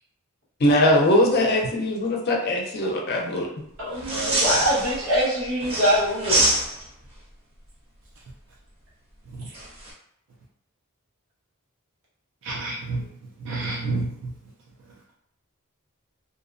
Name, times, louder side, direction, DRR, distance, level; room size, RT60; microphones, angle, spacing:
voice 1, 0.6-3.5, left 1 dB, 45° left, 0 dB, 0.5 m, -21 dB
voice 2, 3.8-6.4, equal, 90° right, -7 dB, 1.2 m, -23 dB
sound 1, 4.0-5.2 5.6-7.0 9.5-9.9, right 1 dB, 25° right, 0.7 m, -25 dB
voice 3, 12.4-13.0 13.4-14.3, right 2 dB, 60° right, -4 dB, 0.4 m, -29 dB
2.6 x 2.0 x 2.5 m, 0.74 s
head